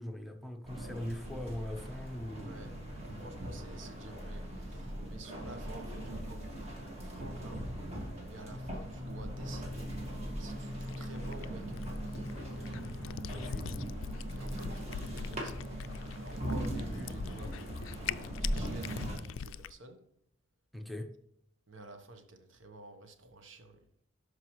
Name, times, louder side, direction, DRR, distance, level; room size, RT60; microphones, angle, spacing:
voice 1, 0.0-2.5 12.5-13.9 20.7-21.1, left 1 dB, ahead, 0.8 m, -41 dB
sound 1, 0.7-19.2, right 1 dB, 35° right, 2.0 m, -40 dB
voice 2, 2.4-6.7 7.0-7.7 8.3-10.0 10.4-11.9 14.3-15.7 16.2-20.0 21.7-23.8, right 2 dB, 70° right, 1.1 m, -51 dB
Singing, 8.4-17.3, equal, 55° right, 1.5 m, -45 dB
Cat, 10.7-19.7, left 7 dB, 80° left, 0.3 m, -44 dB
12.0 x 4.9 x 3.1 m
head